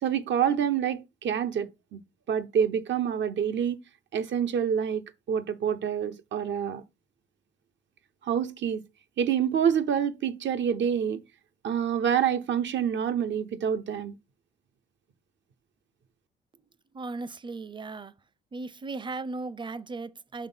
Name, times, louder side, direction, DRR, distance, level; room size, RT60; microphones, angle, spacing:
voice 1, 0.0-2.0 2.3-3.8 4.1-5.0 5.3-6.8 8.2-8.8 9.2-11.2 11.6-14.2, right 8 dB, 65° right, 1.0 m, -27 dB
voice 2, 16.9-18.1 18.5-20.5, right 3 dB, 25° right, 0.6 m, -37 dB
6.0 x 4.4 x 5.7 m
cardioid pair, 90°, 20 cm